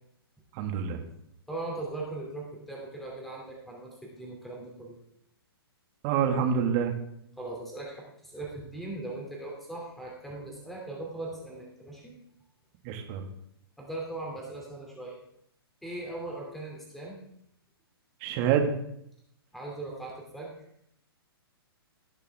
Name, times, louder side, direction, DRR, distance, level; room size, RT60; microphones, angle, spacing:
voice 1, 0.5-1.0 6.0-6.9 12.8-13.3 18.2-18.7, right 7 dB, 35° right, 4 dB, 1.8 m, -26 dB
voice 2, 1.5-5.0 7.4-12.1 13.8-15.2 15.8-17.2 19.5-20.5, right 2 dB, ahead, -3 dB, 2.7 m, -39 dB
18.5 x 6.8 x 3.5 m, 0.74 s
figure-of-eight pair, 120°, 13 cm